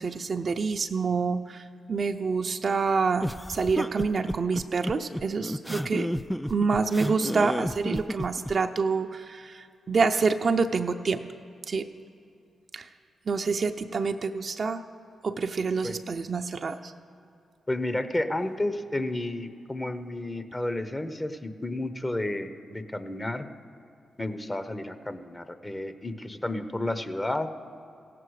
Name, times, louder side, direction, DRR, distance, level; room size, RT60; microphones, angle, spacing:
voice 1, 0.0-6.1 6.5-11.2 11.7-11.9 12.7-12.9 13.3-14.8 15.2-16.9, right 4 dB, 55° right, 7 dB, 0.5 m, -27 dB
sound 1, 3.2-8.5, equal, 5° left, 0.3 m, -31 dB
voice 2, 17.7-23.5 24.2-27.5, left 1 dB, 25° left, 10 dB, 0.9 m, -31 dB
16.0 x 7.7 x 4.8 m, 2.6 s
supercardioid pair, 45°, 0 cm